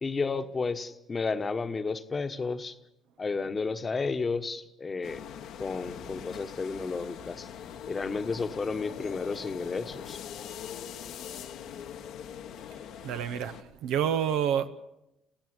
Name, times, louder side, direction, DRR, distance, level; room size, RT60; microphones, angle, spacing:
voice 1, 0.0-2.8 3.2-5.2 5.6-7.5 7.9-10.2, left 4 dB, 30° left, 1.2 m, -32 dB
sound 1, 5.0-13.6, left 9 dB, 70° left, 1.2 m, -42 dB
voice 2, 13.0-14.7, right 9 dB, 75° right, 1.0 m, -28 dB
25.0 x 15.5 x 7.9 m
hypercardioid pair, 60°, 0 cm